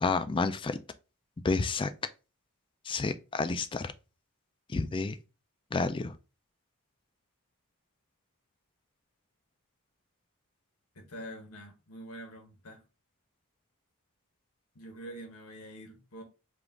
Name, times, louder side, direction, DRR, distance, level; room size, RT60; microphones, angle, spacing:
voice 1, 0.0-0.8 1.4-1.9 2.8-3.9 4.7-5.2 5.7-6.1, left 4 dB, 20° left, 0.3 m, -30 dB
voice 2, 10.9-12.8 14.7-16.2, equal, 80° left, 1.3 m, -45 dB
5.0 x 2.5 x 3.6 m
head